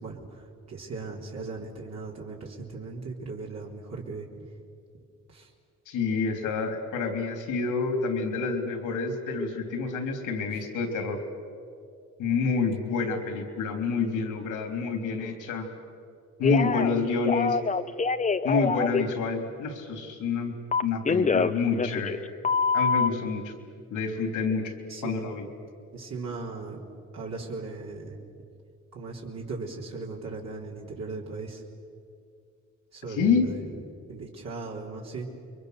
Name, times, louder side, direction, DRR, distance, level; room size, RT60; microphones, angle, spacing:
voice 1, 0.7-4.3 5.3-5.4 24.9-25.2 25.9-26.8 27.1-28.2 28.9-31.6 32.9-33.5 34.1-35.3, right 3 dB, 60° right, -3 dB, 3.8 m, -37 dB
voice 2, 5.9-11.2 12.2-15.7 16.4-17.6 18.4-20.5 20.8-22.2 22.7-23.5 23.9-24.7 25.0-25.5 33.1-33.5, left 4 dB, 85° left, 4 dB, 3.6 m, -28 dB
Telephone, 16.4-16.9 17.2-19.0 20.7-22.2 22.4-23.1, left 5 dB, 25° left, 0.8 m, -25 dB
29.5 x 23.0 x 6.8 m, 2.4 s
cardioid pair, 90°, 30 cm